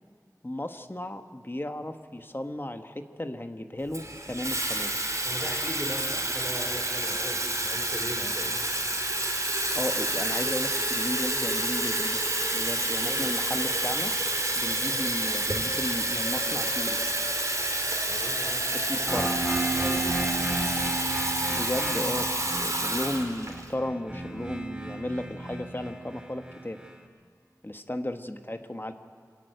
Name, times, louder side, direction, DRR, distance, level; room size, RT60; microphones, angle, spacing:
voice 1, 0.4-5.0 9.7-12.2 12.5-14.2 14.6-17.0 18.7-19.5 21.5-26.8 27.6-28.9, left 1 dB, 30° left, 7 dB, 1.2 m, -34 dB
Water tap faucet / Fill (with liquid), 3.9-23.7, right 1 dB, 50° right, 2.9 m, -29 dB
voice 2, 5.2-8.6 13.0-13.3 14.8-15.0 18.0-19.2 19.8-20.1, equal, 10° left, 2 dB, 3.2 m, -39 dB
sound 1, 19.1-26.9, right 2 dB, 10° right, 2.0 m, -34 dB
25.5 x 13.5 x 9.2 m, 2.2 s
wide cardioid pair, 45°, 7 cm